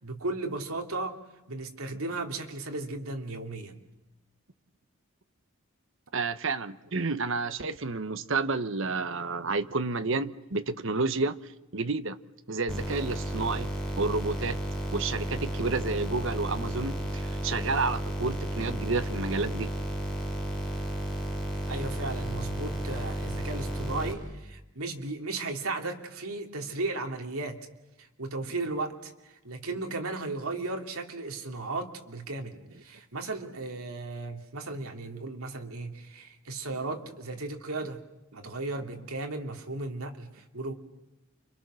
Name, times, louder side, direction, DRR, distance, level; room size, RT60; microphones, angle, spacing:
voice 1, 0.0-1.1 1.5-3.8 21.7-27.6 28.0-38.0 38.3-40.7, right 2 dB, 80° right, 2.8 m, -35 dB
voice 2, 6.1-11.4 11.7-12.2 12.5-14.6 14.9-19.7, right 3 dB, 60° right, 1.0 m, -30 dB
sound 1, 12.7-24.1, equal, 5° left, 6.7 m, -33 dB
29.5 x 25.5 x 6.4 m
head